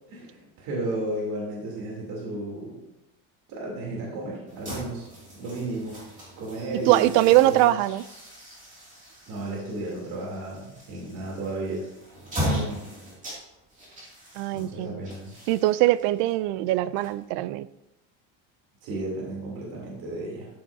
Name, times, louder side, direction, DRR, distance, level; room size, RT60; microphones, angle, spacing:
voice 1, 0.1-2.8 3.5-5.1 5.3-6.0 6.4-7.7 9.3-11.8 12.4-12.8 14.5-15.3 18.8-20.5, right 2 dB, 55° right, 3.1 m, -33 dB
sound 1, 4.5-17.5, equal, 20° right, 2.5 m, -38 dB
voice 2, 6.9-8.0 14.4-15.0 15.5-17.7, right 16 dB, 70° right, 0.5 m, -22 dB
12.5 x 8.5 x 2.7 m
cardioid pair, 175°, 42 cm